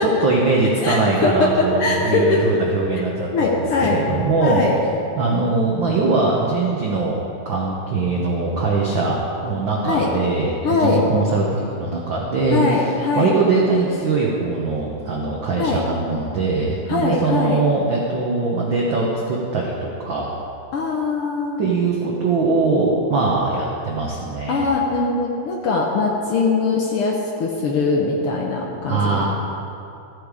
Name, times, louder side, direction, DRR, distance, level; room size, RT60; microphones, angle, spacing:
voice 1, 0.0-3.5 3.9-4.6 5.2-7.2 7.4-20.4 21.6-24.6 28.9-29.3, right 3 dB, 85° right, -2 dB, 1.0 m, -21 dB
voice 2, 0.8-2.4 3.3-4.0 4.4-4.8 9.8-10.1 10.6-11.1 12.5-13.3 15.6-15.8 16.9-17.6 20.7-21.6 24.5-29.3, left 3 dB, 75° left, -1 dB, 1.3 m, -21 dB
14.5 x 8.6 x 4.9 m, 2.7 s
omnidirectional pair, 3.8 m